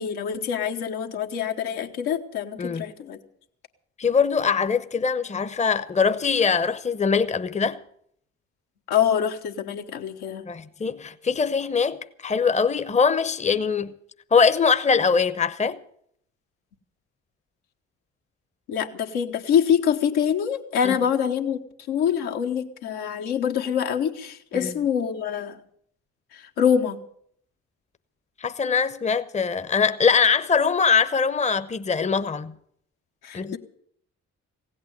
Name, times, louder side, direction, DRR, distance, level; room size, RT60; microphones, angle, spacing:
voice 1, 0.0-3.2 8.9-10.4 18.7-21.6 21.9-25.6 26.3-27.0 33.2-33.6, left 8 dB, 70° left, 1.5 m, -25 dB
voice 2, 2.6-2.9 4.0-7.8 10.4-13.9 14.3-15.8 20.8-21.0 24.5-24.7 28.4-32.5 33.3-33.6, left 5 dB, 15° left, 0.9 m, -22 dB
16.5 x 8.8 x 9.1 m
figure-of-eight pair, 40°, 40 cm